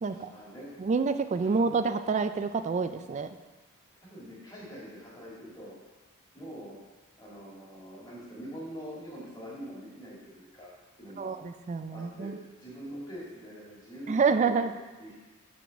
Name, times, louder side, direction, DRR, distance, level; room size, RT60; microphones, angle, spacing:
voice 1, 0.1-0.8 1.4-1.8 4.0-5.7 6.3-6.8 7.2-10.7 11.0-11.4 11.9-12.3 12.6-14.7 15.0-15.1, equal, 20° left, -6 dB, 1.9 m, -44 dB
voice 2, 0.8-3.3 11.2-12.4 14.1-14.7, right 4 dB, 35° right, 10 dB, 0.3 m, -28 dB
5.7 x 4.0 x 6.1 m, 1.2 s
head